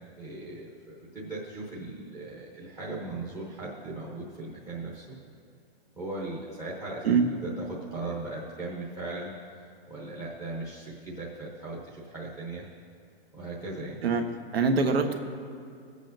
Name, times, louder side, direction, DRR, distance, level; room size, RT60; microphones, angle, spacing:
voice 1, 0.2-5.0 5.9-12.6 13.3-14.0, right 2 dB, 10° right, -7 dB, 0.9 m, -38 dB
voice 2, 14.5-15.1, right 5 dB, 75° right, 6 dB, 1.2 m, -23 dB
22.5 x 8.3 x 2.7 m, 2.3 s
hypercardioid pair, 170°, 31 cm